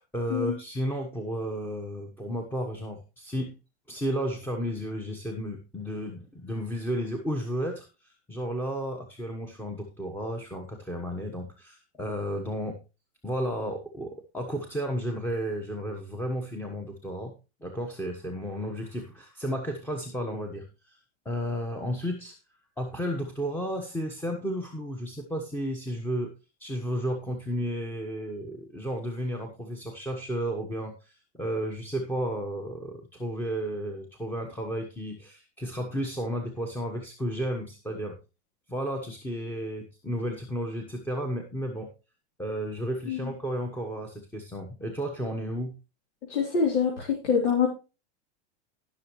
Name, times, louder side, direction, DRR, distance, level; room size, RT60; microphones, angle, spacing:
voice 1, 0.0-3.6 3.9-12.8 13.2-17.3 17.6-21.0 21.2-22.4 22.8-26.3 26.6-38.2 38.7-41.9 42.4-45.8, equal, 5° left, 1 dB, 1.1 m, -33 dB
voice 2, 46.3-47.7, left 6 dB, 80° left, -2 dB, 3.5 m, -25 dB
18.5 x 6.4 x 3.1 m, 0.29 s
supercardioid pair, 150°, 35 cm